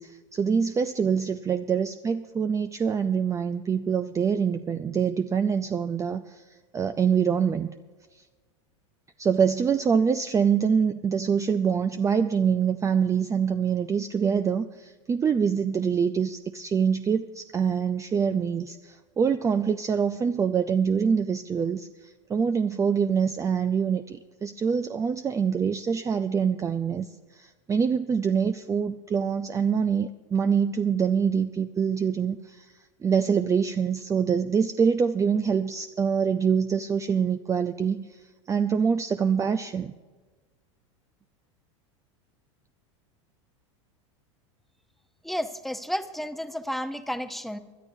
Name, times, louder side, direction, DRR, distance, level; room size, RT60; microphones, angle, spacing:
voice 1, 0.0-7.7 8.1-8.2 9.2-32.7 33.0-38.2 38.5-39.9, right 6 dB, 20° right, 9 dB, 0.4 m, -25 dB
voice 2, 45.2-47.6, equal, ahead, 8 dB, 0.8 m, -32 dB
26.0 x 11.5 x 2.7 m, 1.4 s
hypercardioid pair, 100°, 16 cm